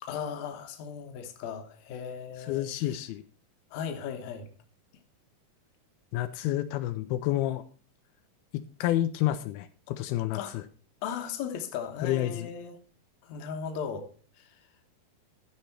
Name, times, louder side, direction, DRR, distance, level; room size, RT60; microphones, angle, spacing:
voice 1, 0.0-3.0 3.7-4.5 10.3-10.6 11.0-12.8 13.2-14.1 14.4-14.6, left 7 dB, 65° left, 2.1 m, -37 dB
voice 2, 2.5-3.2 6.1-7.6 8.5-10.6 12.0-12.5, left 14 dB, 85° left, 2.4 m, -29 dB
13.5 x 5.6 x 4.3 m
omnidirectional pair, 4.4 m